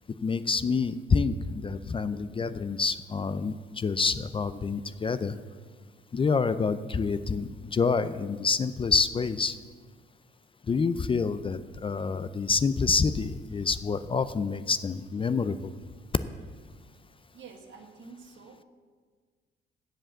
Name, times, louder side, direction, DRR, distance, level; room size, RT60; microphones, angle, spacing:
voice 1, 0.2-5.3 6.1-9.6 10.7-15.7, left 5 dB, 25° left, 13 dB, 0.4 m, -27 dB
voice 2, 17.3-18.6, right 5 dB, 70° right, 4 dB, 1.5 m, -48 dB
7.6 x 7.6 x 7.3 m, 1.5 s
cardioid pair, 90°, 20 cm